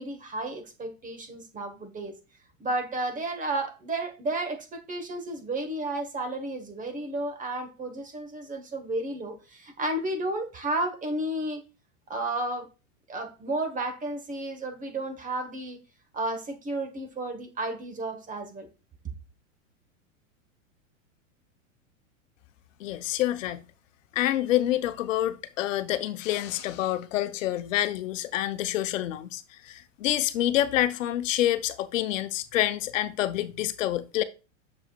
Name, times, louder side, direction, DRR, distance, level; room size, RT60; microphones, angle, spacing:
voice 1, 0.0-2.1 2.6-11.6 12.1-12.7 13.1-15.8 16.1-18.7, right 2 dB, 20° right, 1.3 m, -32 dB
voice 2, 22.8-23.6 24.1-34.2, left 13 dB, 75° left, 0.9 m, -27 dB
7.1 x 6.6 x 2.4 m
hypercardioid pair, 115°, 39 cm